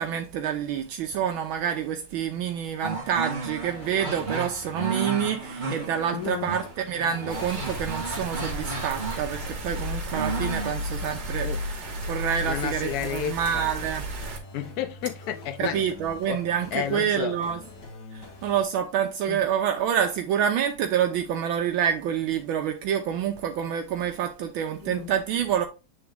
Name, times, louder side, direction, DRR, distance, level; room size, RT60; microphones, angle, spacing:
voice 1, 0.0-14.0 15.6-17.6 18.1-25.7, right 8 dB, 75° right, 1.4 m, -27 dB
sound 1, 2.8-10.7, right 3 dB, 25° right, 1.4 m, -34 dB
sound 2, 3.5-18.6, left 2 dB, 55° left, 1.8 m, -46 dB
voice 2, 6.1-6.5 11.4-11.6 12.4-13.7 14.5-15.8 16.3-16.4 16.7-17.3 19.3-19.4 24.8-25.1, left 10 dB, 80° left, 0.8 m, -31 dB
sound 3, 7.3-14.4, equal, 50° right, 1.9 m, -33 dB
8.2 x 3.5 x 3.5 m
omnidirectional pair, 2.3 m